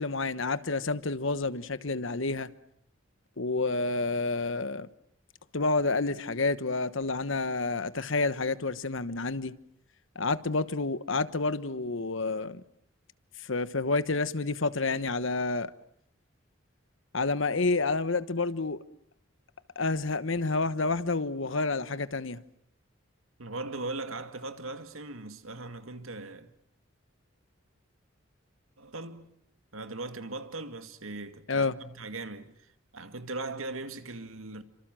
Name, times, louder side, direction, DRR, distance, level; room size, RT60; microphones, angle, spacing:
voice 1, 0.0-2.5 3.4-4.9 5.5-9.5 10.1-12.6 13.4-15.7 17.1-18.8 19.7-22.4 31.5-31.8, left 3 dB, 70° left, 1.2 m, -29 dB
voice 2, 23.4-26.5 28.8-29.3 29.7-34.6, right 2 dB, 85° right, 2.2 m, -39 dB
29.5 x 25.5 x 7.7 m
head